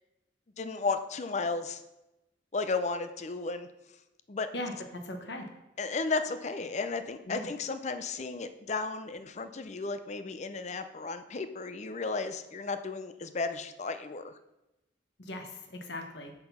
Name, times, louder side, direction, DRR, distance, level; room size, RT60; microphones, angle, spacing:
voice 1, 0.6-1.8 2.5-3.7 4.3-4.5 5.8-14.3, left 4 dB, 40° left, 10 dB, 0.5 m, -34 dB
voice 2, 4.5-5.5 7.3-7.5 15.3-16.3, left 1 dB, 65° left, 4 dB, 1.2 m, -39 dB
6.7 x 6.0 x 5.5 m, 0.95 s
head